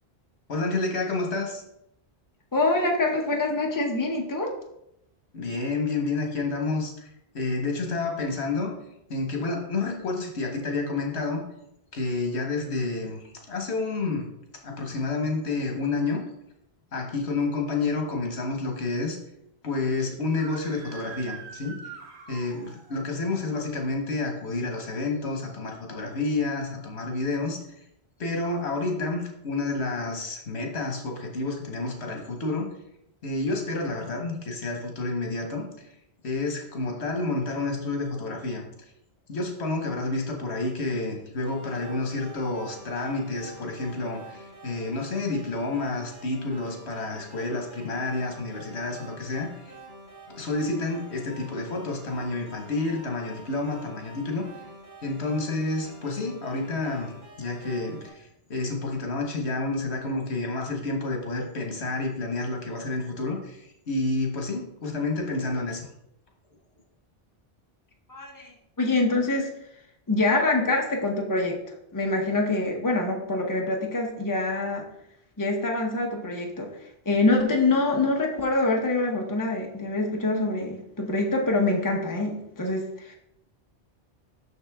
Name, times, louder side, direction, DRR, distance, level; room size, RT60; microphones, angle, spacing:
voice 1, 0.5-1.6 5.3-8.7 9.1-11.4 11.9-14.3 14.6-16.2 16.9-19.2 19.6-21.8 22.3-27.6 28.2-32.7 33.2-35.7 36.2-38.6 39.3-49.8 50.4-54.5 55.0-65.9, left 3 dB, 80° left, 2 dB, 1.5 m, -29 dB
voice 2, 2.5-4.5 68.1-68.5 68.8-69.5 70.1-71.6 71.9-74.8 75.4-76.7 77.0-83.1, left 2 dB, 20° left, 1 dB, 1.0 m, -25 dB
Screaming, 20.2-23.0, right 6 dB, 85° right, 1.3 m, -44 dB
sound 1, 41.4-58.1, right 1 dB, 50° left, 3.2 m, -47 dB
6.5 x 6.3 x 3.5 m, 0.80 s
omnidirectional pair, 1.1 m